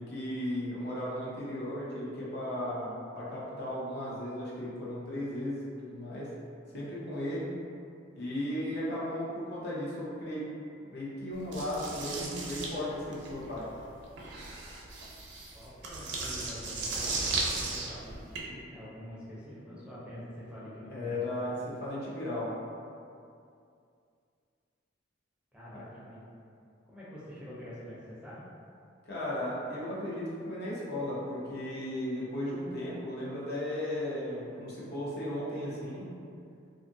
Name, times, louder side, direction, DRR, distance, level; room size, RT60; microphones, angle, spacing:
voice 1, 0.0-6.3 6.7-7.5 8.1-10.5 10.9-13.7 20.9-22.5 25.7-25.8 29.1-36.1, left 1 dB, 55° left, -7 dB, 0.7 m, -35 dB
sound 1, 11.5-18.4, right 3 dB, 60° right, 0.5 m, -36 dB
voice 2, 15.5-17.2 17.5-21.3 25.5-26.2 26.8-28.4, equal, 5° right, -9 dB, 0.5 m, -46 dB
2.6 x 2.4 x 2.5 m, 2.4 s
head